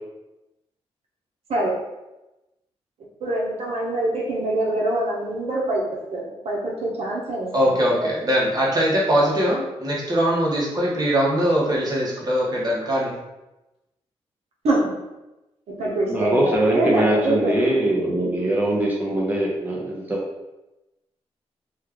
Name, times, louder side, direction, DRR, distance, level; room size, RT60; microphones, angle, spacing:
voice 1, 3.2-7.8 14.6-15.0 15.8-17.9, right 1 dB, 70° right, -4 dB, 0.8 m, -25 dB
voice 2, 7.5-13.1, equal, 35° right, -4 dB, 1.2 m, -21 dB
voice 3, 16.1-20.2, right 1 dB, 15° right, -4 dB, 0.7 m, -22 dB
3.1 x 2.3 x 3.6 m, 0.99 s
cardioid pair, 85°, 11 cm